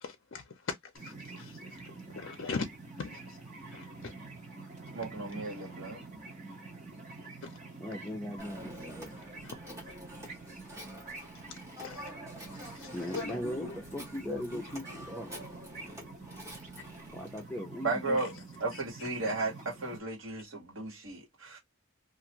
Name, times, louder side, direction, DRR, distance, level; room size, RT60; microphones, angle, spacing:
voice 1, 0.0-2.7 3.0-3.4 3.7-4.1 7.4-7.5 9.4-10.0 11.5-12.1 12.5-13.8 14.3-14.6 14.9-15.0 18.0-18.3 18.7-18.8, left 5 dB, 65° left, 0.5 m, -41 dB
sound 1, 0.9-20.0, right 3 dB, 35° right, 1.2 m, -47 dB
voice 2, 4.9-6.0 17.8-18.3 18.6-21.6, right 3 dB, 70° right, 1.5 m, -34 dB
voice 3, 7.8-9.1 12.9-15.3 17.1-18.0, equal, 5° left, 0.6 m, -39 dB
Telephone, 8.4-17.5, equal, 15° right, 1.0 m, -48 dB
2.5 x 2.4 x 2.8 m
head